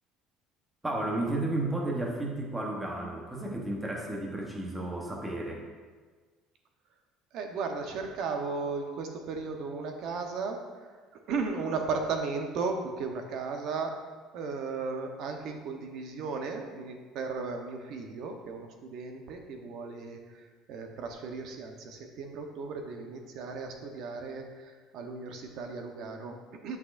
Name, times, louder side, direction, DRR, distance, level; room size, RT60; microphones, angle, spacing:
voice 1, 0.8-5.6, right 2 dB, 10° right, -1 dB, 1.0 m, -32 dB
voice 2, 7.3-14.0 14.3-26.8, right 4 dB, 55° right, 4 dB, 0.9 m, -36 dB
8.6 x 6.0 x 2.5 m, 1.4 s
cardioid pair, 155°, 0 cm